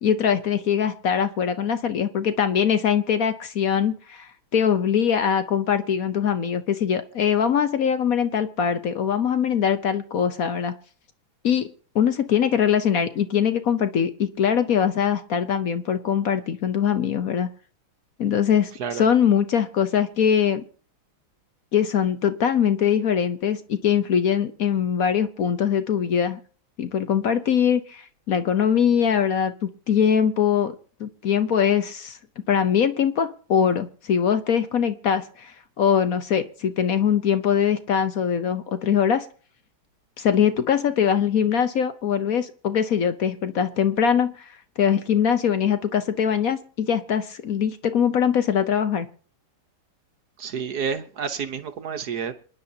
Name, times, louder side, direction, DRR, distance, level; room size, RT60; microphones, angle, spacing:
voice 1, 0.0-10.7 11.4-11.7 11.9-17.5 18.2-20.6 21.7-26.4 26.8-30.7 31.0-32.2 32.5-39.3 40.2-44.5 44.8-49.1, left 8 dB, 60° left, 0.9 m, -22 dB
voice 2, 50.4-52.3, right 6 dB, 55° right, 1.3 m, -29 dB
27.5 x 10.5 x 2.8 m
omnidirectional pair, 2.4 m